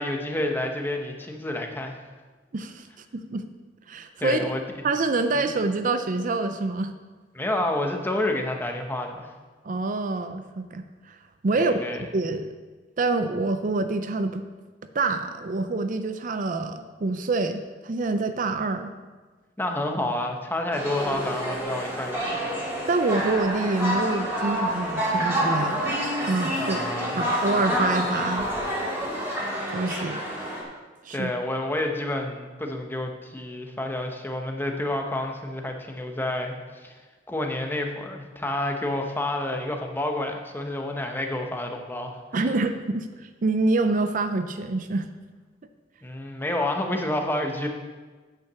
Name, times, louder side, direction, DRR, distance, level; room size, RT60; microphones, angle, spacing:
voice 1, 0.0-2.0 4.2-4.6 7.3-9.3 11.5-12.0 19.6-22.4 26.6-27.2 31.1-37.0 37.3-42.5 46.0-47.7, left 1 dB, 10° left, 3 dB, 1.0 m, -29 dB
voice 2, 2.5-2.9 3.1-3.5 3.9-4.6 4.8-6.9 9.6-11.2 11.4-11.7 12.1-12.5 13.0-14.4 14.9-18.9 22.9-26.0 26.2-26.8 27.2-28.5 29.7-30.2 31.0-31.3 42.3-45.1, right 3 dB, 45° right, 9 dB, 0.5 m, -26 dB
sound 1, 20.7-30.6, equal, 15° right, 2.6 m, -28 dB
9.0 x 5.8 x 6.8 m, 1.4 s
head